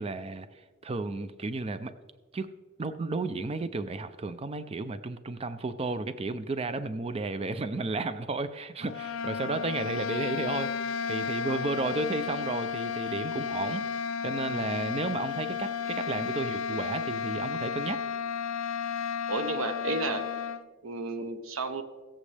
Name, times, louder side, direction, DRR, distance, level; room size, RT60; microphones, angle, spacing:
voice 1, 0.0-1.9 2.3-2.5 2.8-10.7 11.1-13.9 14.2-18.0, right 3 dB, 30° right, 12 dB, 0.4 m, -33 dB
sound 1, 8.8-20.6, left 6 dB, 80° left, 0.5 m, -33 dB
voice 2, 19.3-20.2 20.8-21.8, right 3 dB, 85° right, 9 dB, 0.8 m, -32 dB
21.5 x 7.4 x 3.3 m, 1.4 s
head